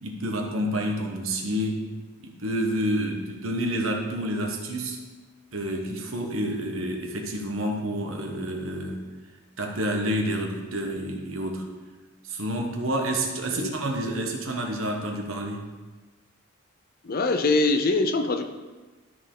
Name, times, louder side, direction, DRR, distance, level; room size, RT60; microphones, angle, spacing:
voice 1, 0.0-1.9 2.2-5.0 5.5-9.0 9.6-11.7 12.2-15.6, right 1 dB, 70° right, 2 dB, 1.3 m, -29 dB
voice 2, 17.0-18.5, left 3 dB, 45° left, 8 dB, 0.6 m, -23 dB
12.5 x 4.4 x 3.9 m, 1.2 s
head